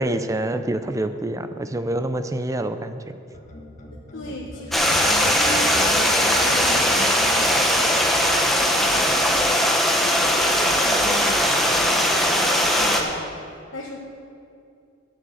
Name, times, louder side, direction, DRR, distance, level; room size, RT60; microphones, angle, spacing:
voice 1, 0.0-3.2, right 1 dB, 15° right, 10 dB, 0.5 m, -26 dB
sound 1, 3.3-4.6 5.4-9.4 10.2-11.8 12.6-12.9, equal, 40° left, 1.4 m, -41 dB
voice 2, 3.9-9.5 10.0-10.2 10.6-13.3 13.7-14.1, left 1 dB, 85° left, -2 dB, 1.1 m, -36 dB
Stream, 4.7-13.0, equal, ahead, 1.0 m, -19 dB
11.5 x 6.3 x 7.9 m, 2.5 s
head